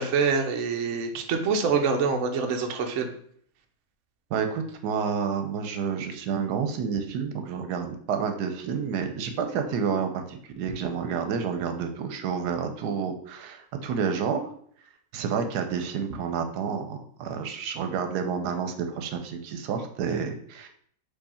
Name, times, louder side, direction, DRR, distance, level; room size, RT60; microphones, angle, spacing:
voice 1, 0.0-3.1, right 5 dB, 60° right, 5 dB, 0.8 m, -25 dB
voice 2, 4.3-14.5 15.1-20.7, right 6 dB, 80° right, 6 dB, 1.2 m, -29 dB
4.8 x 2.7 x 4.2 m, 0.63 s
omnidirectional pair, 1.7 m